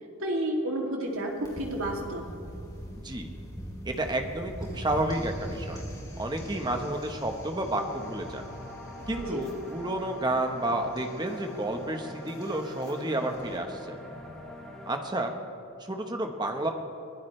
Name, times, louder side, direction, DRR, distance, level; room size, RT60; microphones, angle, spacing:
voice 1, 0.2-2.2 9.3-9.4, right 1 dB, 70° right, -1 dB, 2.7 m, -30 dB
sound 1, 1.1-13.6, equal, 15° left, 3.3 m, -43 dB
voice 2, 3.8-5.8 6.2-8.4 9.1-14.0 14.9-15.3 15.8-16.7, right 1 dB, 20° right, 4 dB, 1.2 m, -31 dB
sound 2, 7.9-15.0, left 1 dB, ahead, 2.6 m, -44 dB
23.5 x 16.5 x 3.3 m, 2.5 s
head